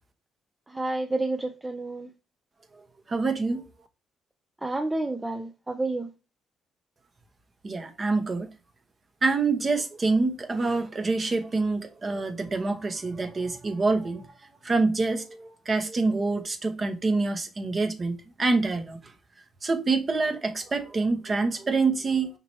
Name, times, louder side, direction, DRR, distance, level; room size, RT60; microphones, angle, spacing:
voice 1, 0.7-2.1 4.6-6.1, right 2 dB, 15° right, 0.5 m, -30 dB
voice 2, 3.1-3.6 7.6-8.5 9.2-14.2 14.6-19.0 19.6-22.3, right 3 dB, 35° right, 1.0 m, -26 dB
5.3 x 2.9 x 3.1 m
cardioid pair, 90°, 0 cm